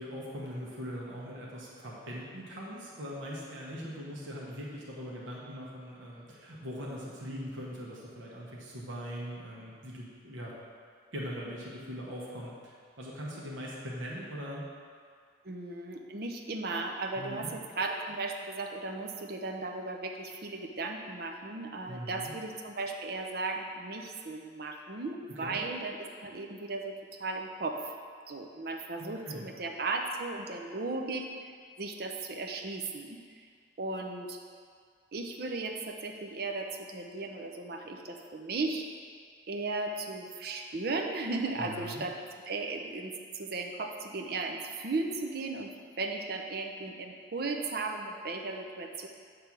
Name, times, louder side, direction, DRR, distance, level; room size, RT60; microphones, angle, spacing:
voice 1, 0.0-10.5 11.1-14.7 17.2-17.5 21.9-22.3 25.4-25.6 29.0-29.5 41.6-42.0, equal, 80° right, -5 dB, 1.2 m, -41 dB
voice 2, 15.4-26.9 27.2-27.8 28.3-33.2 33.8-34.4 35.1-38.9 39.5-42.1 42.5-45.7 46.0-49.1, right 3 dB, 50° right, 3 dB, 0.6 m, -36 dB
8.2 x 3.3 x 5.9 m, 2.1 s
head